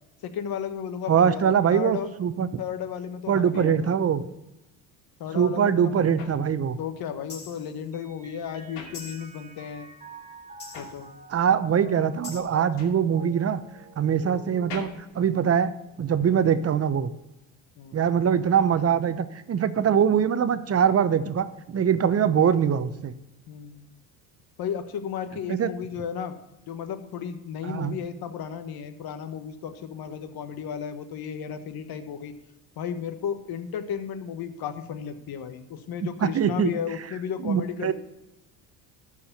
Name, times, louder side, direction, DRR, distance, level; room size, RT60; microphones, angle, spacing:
voice 1, 0.2-2.1 2.6-4.0 5.2-6.0 6.8-9.9 10.7-11.1 17.8-18.0 23.5-23.9 24.6-26.4 26.7-32.3 32.8-37.9, left 8 dB, 55° left, 8 dB, 1.4 m, -34 dB
voice 2, 1.1-2.5 3.3-4.2 5.3-6.8 11.3-13.6 14.0-14.9 15.1-15.7 16.0-17.1 17.9-23.1 25.5-25.7 27.7-28.0 36.2-36.7 37.4-37.9, right 8 dB, 35° right, 13 dB, 0.8 m, -23 dB
sound 1, 6.2-9.7 10.0-16.2, left 5 dB, 70° left, 2.7 m, -46 dB
sound 2, 7.3-7.7 8.9-9.4 10.6-11.1 12.2-12.4, left 5 dB, 30° left, 4.5 m, -42 dB
Mallet percussion, 7.9-15.7, right 2 dB, 15° right, 1.8 m, -47 dB
12.5 x 4.9 x 7.1 m, 0.98 s
supercardioid pair, 90°, 43 cm